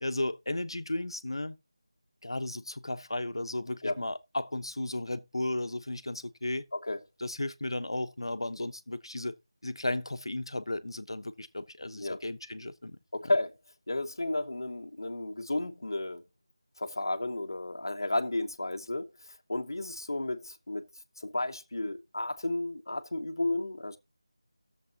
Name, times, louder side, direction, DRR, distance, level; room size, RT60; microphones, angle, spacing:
voice 1, 0.0-1.6 2.2-6.6 7.2-9.3 9.6-13.0 13.2-13.3, left 1 dB, 85° left, 1.0 m, -34 dB
voice 2, 13.1-13.6 13.9-16.2 16.8-20.8 21.2-24.0, left 2 dB, 55° left, 1.0 m, -33 dB
15.0 x 7.1 x 2.9 m
figure-of-eight pair, 180°, 3 cm